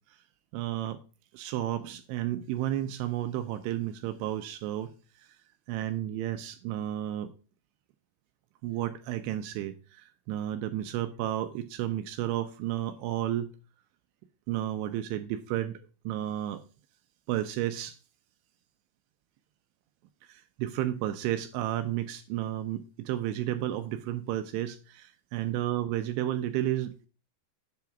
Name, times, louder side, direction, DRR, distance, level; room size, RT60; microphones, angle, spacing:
voice 1, 0.5-1.0 1.3-4.9 5.7-7.3 8.6-13.5 14.5-16.6 17.3-18.0 20.2-27.1, right 13 dB, 85° right, 9 dB, 2.4 m, -32 dB
8.1 x 2.9 x 5.7 m, 0.36 s
omnidirectional pair, 5.2 m